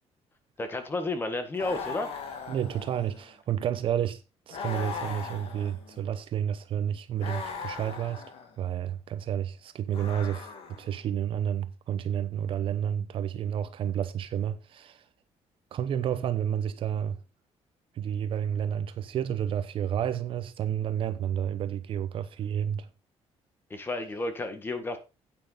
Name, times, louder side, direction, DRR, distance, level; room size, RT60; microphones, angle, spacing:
voice 1, 0.6-2.1 23.7-25.0, left 2 dB, 20° left, 1.6 m, -32 dB
sound 1, 1.5-3.3 4.5-6.1 7.2-8.5 9.9-11.0, left 5 dB, 55° left, 2.7 m, -39 dB
voice 2, 2.5-4.2 4.5-8.2 8.6-10.5 10.8-15.0 15.7-17.2 18.0-22.9, right 9 dB, 50° right, 0.9 m, -30 dB
9.7 x 9.1 x 3.9 m
cardioid pair, 175°, 12 cm